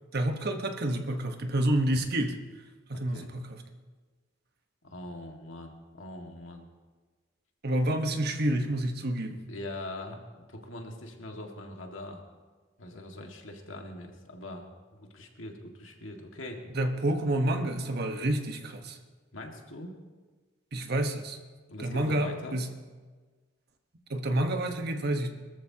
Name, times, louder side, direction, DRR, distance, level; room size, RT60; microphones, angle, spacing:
voice 1, 0.1-2.4 2.9-3.6 7.6-9.4 16.7-19.0 20.7-21.4 21.8-22.7 24.1-25.3, right 1 dB, 55° right, 5 dB, 1.2 m, -29 dB
voice 2, 2.9-3.3 4.8-6.7 9.5-12.2 12.8-16.6 19.3-20.0 21.7-22.6, left 1 dB, 85° left, 2 dB, 1.9 m, -42 dB
22.5 x 14.0 x 2.9 m, 1.4 s
head